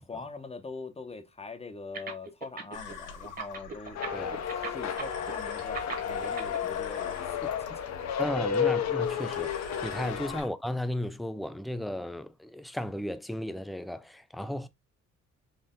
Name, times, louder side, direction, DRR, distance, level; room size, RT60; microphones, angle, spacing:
voice 1, 0.0-4.0 4.4-8.2, left 3 dB, 20° left, 0.8 m, -43 dB
sound 1, 1.9-2.9 3.2-6.6, right 5 dB, 30° right, 1.3 m, -38 dB
sound 2, 2.7-10.5, left 5 dB, 80° left, 1.5 m, -45 dB
sound 3, 4.0-10.4, left 8 dB, 60° left, 0.8 m, -32 dB
voice 2, 8.2-14.7, left 1 dB, ahead, 0.4 m, -34 dB
4.3 x 2.6 x 3.6 m
cardioid pair, 90°, 30 cm